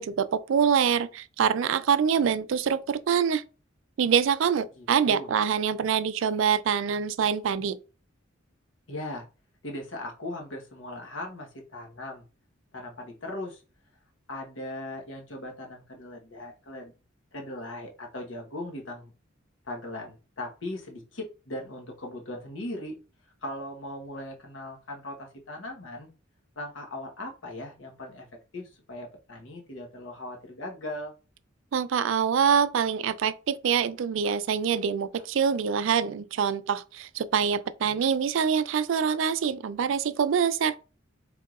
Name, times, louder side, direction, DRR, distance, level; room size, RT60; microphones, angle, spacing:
voice 1, 0.0-3.4 4.0-7.8 31.7-40.8, right 7 dB, 70° right, 0.4 m, -25 dB
voice 2, 4.8-5.3 8.9-9.3 9.6-12.2 12.7-13.6 14.3-16.9 17.3-19.1 19.6-23.0 23.4-26.1 26.6-28.3 28.5-31.1 35.1-35.2, left 1 dB, 70° left, 1.2 m, -38 dB
4.6 x 3.6 x 2.4 m
head